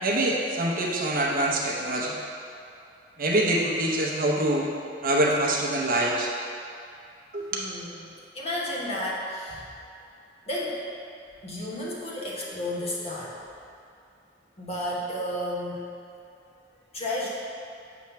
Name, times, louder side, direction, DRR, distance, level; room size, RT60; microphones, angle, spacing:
voice 1, 0.0-2.1 3.2-4.7 5.0-6.3 7.3-7.6, right 1 dB, 50° right, -2 dB, 0.8 m, -25 dB
voice 2, 7.5-9.7 10.5-10.8 11.4-13.4 14.6-15.8 16.5-16.6 16.9-17.3, left 1 dB, 35° left, -6 dB, 1.2 m, -32 dB
7.0 x 3.2 x 5.7 m, 2.5 s
head